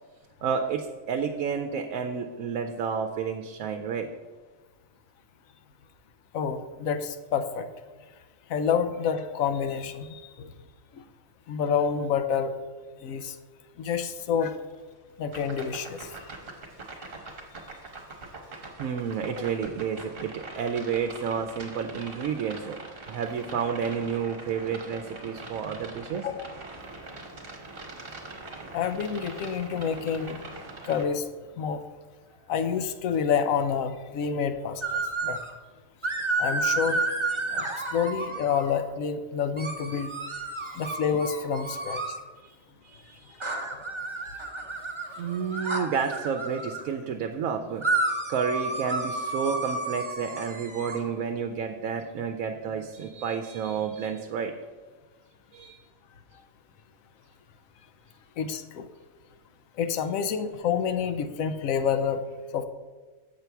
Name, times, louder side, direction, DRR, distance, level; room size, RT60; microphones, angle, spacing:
voice 1, 0.4-4.1 18.8-22.8 23.1-26.3 42.4-42.6 42.8-43.5 45.2-47.8 48.3-54.5 55.5-55.8, right 6 dB, 80° right, 5 dB, 1.0 m, -30 dB
voice 2, 6.3-7.7 8.5-10.5 10.9-11.0 11.5-12.5 13.0-13.4 13.8-14.6 15.2-16.1 26.2-26.5 28.7-30.4 30.9-31.3 31.6-31.8 32.5-35.4 36.4-37.1 37.5-40.1 40.7-42.0 45.8-45.9 58.4-58.9 59.8-62.2 62.5-62.6, left 7 dB, 80° left, 10 dB, 1.0 m, -28 dB
sound 1, 15.3-31.1, right 3 dB, 45° right, 1.4 m, -43 dB
sound 2, 34.8-35.5 36.0-38.8 39.6-42.2 43.4-46.8 47.8-51.0, right 3 dB, 25° right, 0.7 m, -31 dB
7.4 x 4.5 x 6.9 m, 1.3 s
omnidirectional pair, 1.4 m